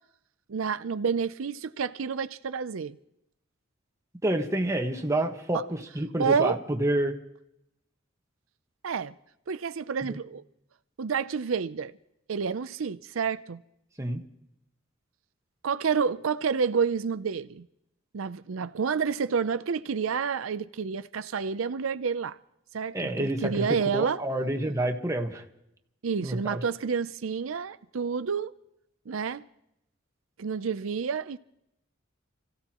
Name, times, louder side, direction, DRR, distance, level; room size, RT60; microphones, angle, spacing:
voice 1, 0.5-3.0 5.5-5.6 6.2-6.6 8.8-9.1 9.5-10.4 11.0-11.9 12.3-13.6 15.6-17.7 18.1-22.4 22.7-24.2 26.0-28.5 29.1-29.4 30.4-31.4, right 6 dB, 85° right, 0.5 m, -29 dB
voice 2, 4.2-7.2 10.0-10.2 14.0-14.2 22.9-23.7 23.9-25.4 26.2-26.6, right 1 dB, 15° right, 1.4 m, -28 dB
29.5 x 15.5 x 3.0 m
head